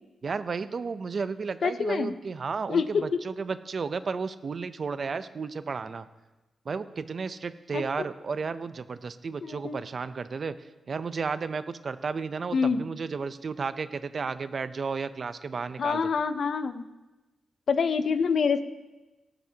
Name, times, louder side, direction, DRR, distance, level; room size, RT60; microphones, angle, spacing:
voice 1, 0.2-6.1 6.7-16.0, right 5 dB, 45° right, 12 dB, 0.6 m, -33 dB
voice 2, 1.6-2.1 2.7-3.2 7.7-7.8 9.4-9.8 12.5-12.8 15.8-16.8 17.7-18.6, left 5 dB, 55° left, 11 dB, 0.6 m, -26 dB
18.5 x 12.0 x 2.8 m, 1.1 s
wide cardioid pair, 130°, 0 cm